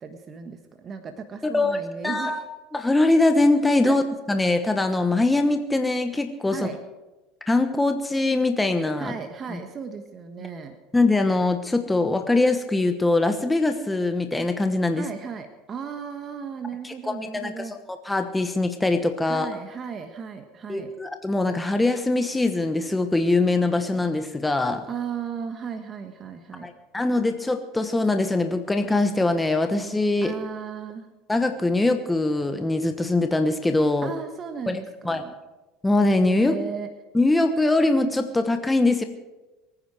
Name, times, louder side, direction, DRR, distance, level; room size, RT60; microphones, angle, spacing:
voice 1, 0.0-2.4 3.8-4.0 6.5-6.8 9.0-10.8 14.9-17.8 19.3-20.9 24.9-26.7 30.2-31.1 34.0-35.3 36.3-36.9, right 6 dB, 35° right, 6 dB, 1.3 m, -35 dB
voice 2, 1.4-1.8 2.0-4.0 4.3-6.7 7.5-9.1 9.5-9.6 10.4-10.5 10.9-15.1 16.8-17.5 18.0-19.5 20.7-24.8 26.6-30.3 31.3-34.1 34.7-35.2 35.8-36.6 37.1-39.0, left 2 dB, 10° left, 7 dB, 1.2 m, -22 dB
23.0 x 9.9 x 5.0 m, 1.1 s
supercardioid pair, 100°, 0 cm